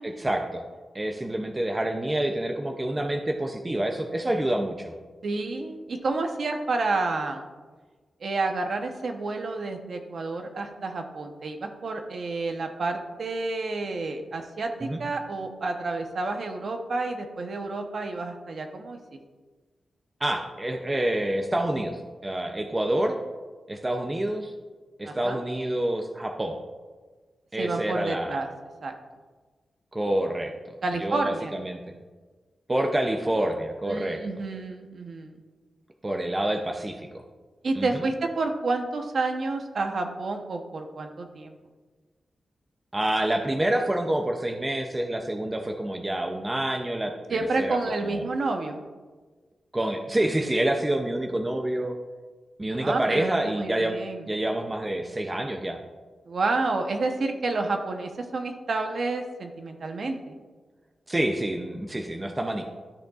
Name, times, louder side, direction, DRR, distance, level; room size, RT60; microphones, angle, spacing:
voice 1, 0.0-0.6 0.9-5.0 14.8-15.0 20.2-23.2 23.7-24.5 25.0-26.6 27.5-28.4 29.9-30.5 31.0-31.8 32.7-34.2 36.0-37.2 37.8-38.1 42.9-47.8 48.0-48.3 49.7-51.9 52.6-54.0 54.3-55.8 61.1-62.6, right 1 dB, 15° right, 3 dB, 0.5 m, -27 dB
voice 2, 5.2-7.4 8.2-19.0 25.0-25.4 27.6-28.5 28.8-28.9 30.8-31.5 33.9-35.4 37.6-41.5 47.3-48.8 52.7-54.2 56.3-60.3, right 3 dB, 50° right, 5 dB, 0.8 m, -30 dB
13.0 x 6.4 x 2.4 m, 1.4 s
wide cardioid pair, 160°, 0 cm